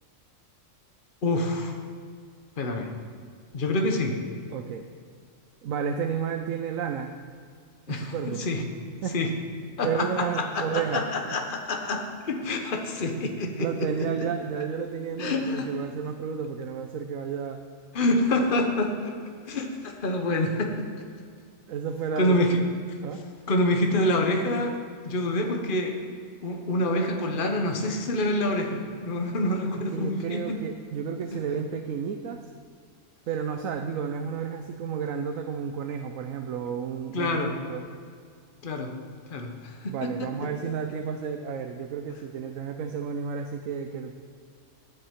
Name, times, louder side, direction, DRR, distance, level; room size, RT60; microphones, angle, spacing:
voice 1, 1.2-1.8 2.6-2.9 3.5-4.2 7.9-8.6 9.1-9.3 9.8-13.7 15.2-15.7 17.9-19.1 19.5-20.9 22.2-22.6 23.5-24.8 25.0-26.0 26.4-30.6 37.1-37.6 38.6-38.9 39.3-40.3, left 1 dB, 40° left, 3 dB, 1.2 m, -27 dB
voice 2, 4.5-4.9 5.6-7.2 7.9-8.5 9.0-9.1 9.8-11.1 13.6-17.6 21.7-22.7 23.0-23.2 29.7-32.5 33.3-37.8 39.9-44.1, right 7 dB, 85° right, 5 dB, 1.1 m, -32 dB
9.6 x 8.4 x 8.1 m, 2.1 s
omnidirectional pair, 1.4 m